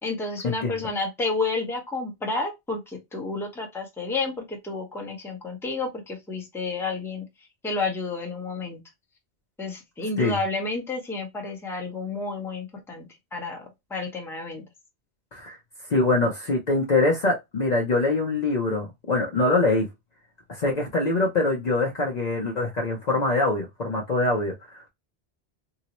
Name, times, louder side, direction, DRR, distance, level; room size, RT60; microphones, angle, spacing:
voice 1, 0.0-7.3 7.6-8.8 9.6-13.0 13.3-14.6, left 3 dB, 5° left, 0.7 m, -30 dB
voice 2, 15.9-19.9 20.5-24.9, left 2 dB, 45° left, 0.6 m, -24 dB
3.7 x 2.0 x 2.8 m
omnidirectional pair, 1.1 m